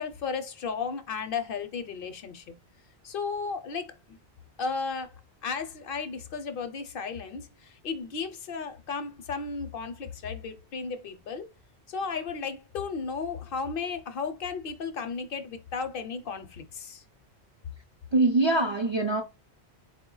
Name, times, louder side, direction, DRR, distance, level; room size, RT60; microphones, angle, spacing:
voice 1, 0.0-2.6 3.0-4.2 4.6-5.2 5.4-11.5 11.9-17.0, left 5 dB, 65° left, 0.7 m, -34 dB
voice 2, 18.1-19.2, right 2 dB, 40° right, 0.4 m, -23 dB
4.2 x 2.1 x 3.8 m
omnidirectional pair, 1.1 m